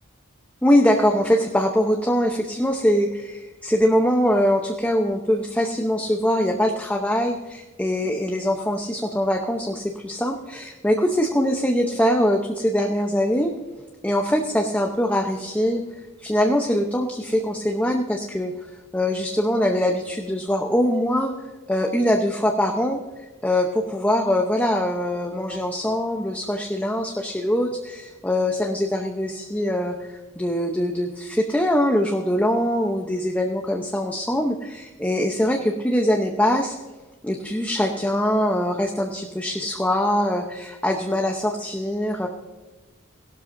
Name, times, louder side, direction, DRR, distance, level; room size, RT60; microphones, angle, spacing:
voice 1, 0.6-3.1 3.6-13.5 14.0-15.8 16.2-18.5 18.9-21.3 21.7-23.0 23.4-36.7 37.2-42.3, equal, 10° left, 2 dB, 0.8 m, -22 dB
17.5 x 12.5 x 2.7 m, 1.2 s
head